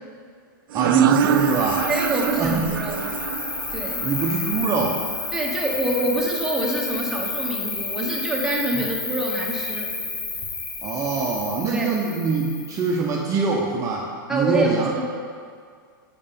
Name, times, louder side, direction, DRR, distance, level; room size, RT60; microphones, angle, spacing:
voice 1, 0.7-1.9 2.4-2.8 4.0-5.0 8.7-8.8 10.8-14.9, right 4 dB, 25° right, -2 dB, 0.7 m, -23 dB
sound 1, 0.7-6.1, right 9 dB, 75° right, 0.4 m, -26 dB
Cricket, 1.1-13.1, left 4 dB, 40° left, 1.4 m, -31 dB
voice 2, 1.9-3.1 3.7-4.1 5.3-9.9 11.7-11.9 14.3-15.3, right 1 dB, 5° right, -3 dB, 1.2 m, -26 dB
6.9 x 5.3 x 5.2 m, 2.1 s
hypercardioid pair, 120°, 12 cm